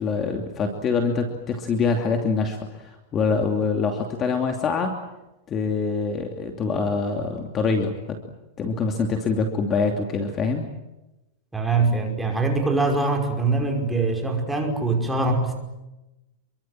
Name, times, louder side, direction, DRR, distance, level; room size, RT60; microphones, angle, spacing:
voice 1, 0.0-4.9 5.5-8.2 8.6-10.7, left 4 dB, 25° left, 4 dB, 2.8 m, -25 dB
voice 2, 11.5-15.5, right 3 dB, 5° right, 3 dB, 5.3 m, -23 dB
28.5 x 24.0 x 7.6 m, 0.99 s
supercardioid pair, 155°, 0 cm